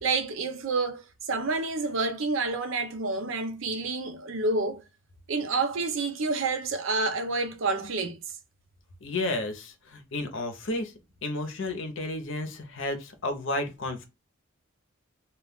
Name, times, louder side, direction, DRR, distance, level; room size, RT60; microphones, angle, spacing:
voice 1, 0.0-4.8 5.3-8.2, right 3 dB, 70° right, 0.6 m, -29 dB
voice 2, 9.0-10.9 11.2-14.0, left 2 dB, 65° left, 0.7 m, -32 dB
2.3 x 2.3 x 3.5 m
head